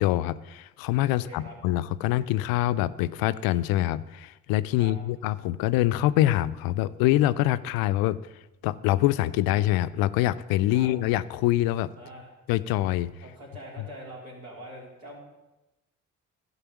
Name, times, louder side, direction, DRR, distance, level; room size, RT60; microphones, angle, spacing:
voice 1, 0.0-8.2 8.6-11.9 12.5-13.1, left 15 dB, 75° left, 15 dB, 0.5 m, -25 dB
voice 2, 1.1-1.5 4.8-4.9 10.7-10.9 11.9-12.3 13.2-15.2, right 1 dB, 65° right, -3 dB, 4.0 m, -43 dB
12.0 x 5.5 x 7.1 m, 1.0 s
hypercardioid pair, 50°, 37 cm